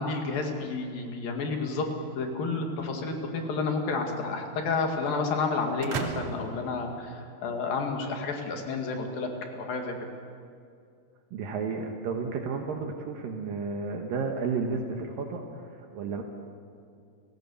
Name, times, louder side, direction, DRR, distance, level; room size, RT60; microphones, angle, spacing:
voice 1, 0.0-1.9 2.2-9.9, left 4 dB, 70° left, 3 dB, 3.9 m, -30 dB
sound 1, 5.8-7.8, right 5 dB, 55° right, 1.7 m, -37 dB
voice 2, 11.3-16.2, right 4 dB, 70° right, 2 dB, 3.0 m, -32 dB
29.5 x 16.5 x 7.1 m, 2.4 s
omnidirectional pair, 4.3 m